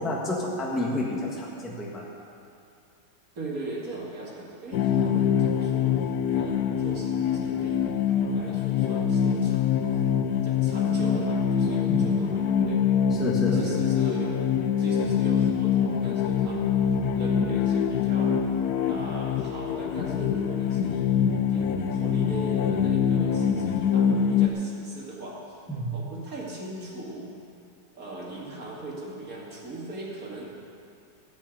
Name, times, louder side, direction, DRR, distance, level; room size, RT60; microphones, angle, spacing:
voice 1, 0.0-2.1 11.8-12.1 13.1-13.8 25.7-26.0, left 1 dB, ahead, -3 dB, 1.4 m, -30 dB
voice 2, 3.4-5.9 6.3-10.0 10.3-12.9 13.5-14.4 14.8-16.8 17.1-18.4 18.9-25.6 25.9-27.3 27.9-30.5, right 2 dB, 45° right, -4 dB, 2.7 m, -39 dB
sound 1, 4.7-24.5, left 8 dB, 65° left, 1.0 m, -24 dB
14.5 x 6.4 x 9.1 m, 2.5 s
omnidirectional pair, 2.1 m